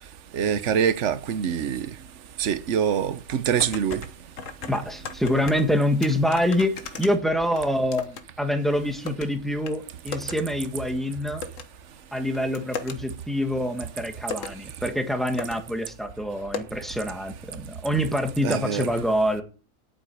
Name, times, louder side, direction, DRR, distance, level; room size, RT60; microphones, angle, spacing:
voice 1, 0.3-1.9 2.4-4.0 18.4-18.9, right 8 dB, 60° right, 1.2 m, -24 dB
Gear shifts and other noises - Toyota Verso Interior, 3.3-4.1 4.4-5.7 6.0-8.2 8.5-9.3 9.7-9.8 10.1-10.4 10.6-10.7 11.4-11.6 12.2-12.9 13.8-13.9 14.2-14.6 15.1-15.2 15.4-15.6 15.8-15.9 16.5-16.6, left 5 dB, 65° left, 1.6 m, -35 dB
voice 2, 4.7-11.4 12.1-19.4, equal, ahead, 1.5 m, -26 dB
8.8 x 7.8 x 9.1 m
omnidirectional pair, 1.5 m